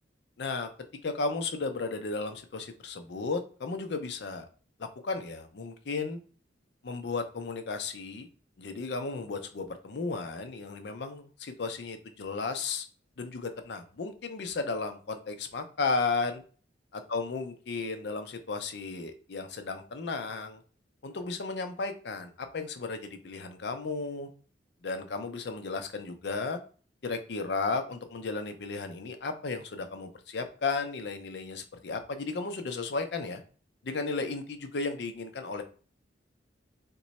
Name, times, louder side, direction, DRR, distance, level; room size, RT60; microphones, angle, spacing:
voice 1, 0.4-0.7 1.0-4.5 5.0-6.2 6.8-8.3 8.6-12.8 13.2-16.4 16.9-20.6 21.0-24.3 24.8-26.6 27.0-33.4 33.8-35.6, left 4 dB, 65° left, 7 dB, 0.5 m, -34 dB
3.0 x 2.2 x 4.0 m, 0.40 s
head